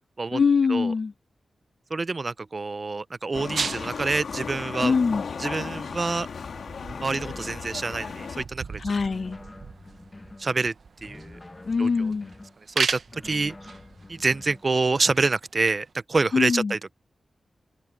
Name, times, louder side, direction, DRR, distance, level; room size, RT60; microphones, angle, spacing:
voice 1, 0.3-1.1 4.8-5.2 8.8-9.4 11.6-12.3 16.3-16.7, left 5 dB, 55° left, 0.8 m, -23 dB
voice 2, 1.9-4.9 5.4-6.3 7.0-8.8 10.4-10.7 11.0-11.4 11.8-11.9 12.8-13.6 14.1-16.9, right 3 dB, 40° right, 0.6 m, -27 dB
sound 1, 3.3-8.4, left 5 dB, 80° left, 2.3 m, -35 dB
sound 2, 3.6-15.9, right 5 dB, 65° right, 0.9 m, -37 dB
sound 3, 6.8-8.4 8.9-10.5 11.0-12.6 13.1-14.7, left 2 dB, 25° left, 1.0 m, -46 dB
wide cardioid pair, 85°, 0 cm